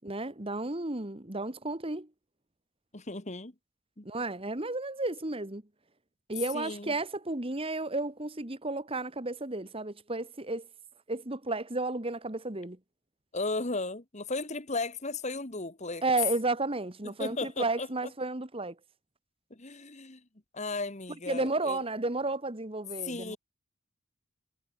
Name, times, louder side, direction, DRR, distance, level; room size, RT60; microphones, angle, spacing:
voice 1, 0.0-2.1 4.0-5.6 6.3-10.7 11.1-12.8 16.0-18.7 21.3-23.4, right 2 dB, 25° right, 1.7 m, -32 dB
voice 2, 2.9-3.5 4.0-4.1 6.5-7.0 13.3-16.0 17.2-17.9 19.5-20.2 20.5-21.8 23.0-23.4, left 3 dB, 35° left, 1.9 m, -35 dB
head